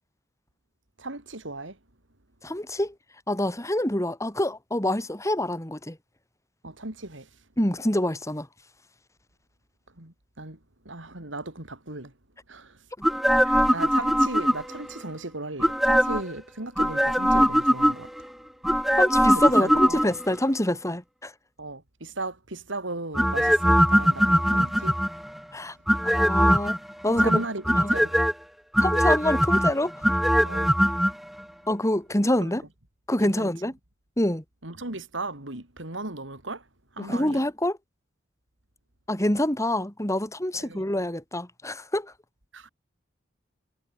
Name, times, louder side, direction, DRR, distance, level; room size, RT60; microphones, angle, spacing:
voice 1, 1.0-1.8 6.6-7.3 10.0-10.6 10.9-12.1 12.5-12.8 13.3-18.1 19.6-20.0 21.6-25.0 27.1-28.1 30.4-30.8 32.4-32.6 33.2-33.5 34.6-36.6 36.9-37.4 40.6-40.8 42.5-42.7, right 2 dB, 70° right, 3.9 m, -36 dB
voice 2, 2.4-2.9 3.3-6.0 7.6-8.5 19.0-21.3 25.5-25.8 26.0-26.8 27.0-27.4 27.8-27.9 28.8-29.9 31.7-32.6 33.1-33.7 34.2-34.4 37.0-37.8 39.1-42.1, left 1 dB, 15° left, 3.8 m, -26 dB
sound 1, 13.0-14.9 15.6-16.3 16.8-18.2 18.6-20.3 23.1-25.3 25.9-26.8 27.2-28.3 28.7-31.1 31.4-31.5, equal, ahead, 0.8 m, -21 dB
head